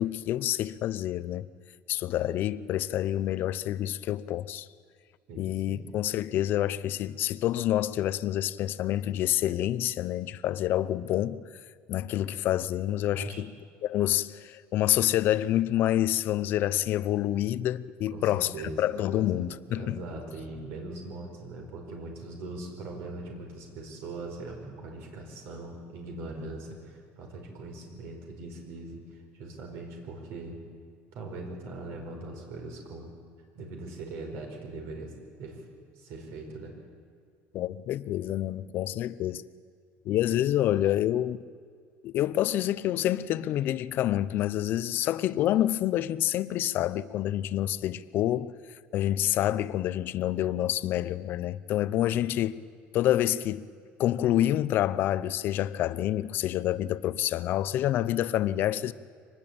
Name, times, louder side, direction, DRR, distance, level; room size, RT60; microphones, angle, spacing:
voice 1, 0.0-1.5 1.9-4.7 5.4-11.4 11.9-13.5 13.8-18.5 18.8-20.0 37.5-39.4 40.0-41.4 42.0-48.5 48.9-52.5 52.9-53.7 54.0-58.9, left 13 dB, 45° left, 0.7 m, -27 dB
voice 2, 5.3-5.8 13.1-13.5 18.1-18.8 19.1-30.6 31.1-33.1 33.5-35.1 35.4-35.6 35.9-36.7 52.0-52.3, right 2 dB, 60° right, 4.9 m, -41 dB
24.5 x 19.5 x 8.8 m
cardioid pair, 165°, 5 cm